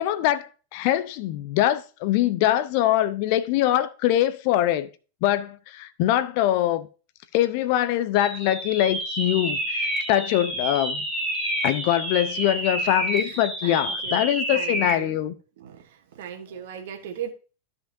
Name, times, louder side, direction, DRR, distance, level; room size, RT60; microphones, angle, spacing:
voice 1, 0.0-4.9 5.2-6.9 7.3-11.0 11.6-15.3, left 13 dB, 45° left, 0.6 m, -23 dB
sound 1, 8.1-15.1, right 1 dB, ahead, 2.1 m, -29 dB
voice 2, 13.2-14.2 14.5-15.2 15.6-17.3, right 9 dB, 55° right, 1.4 m, -38 dB
13.5 x 5.3 x 2.7 m
figure-of-eight pair, 90°, 0 cm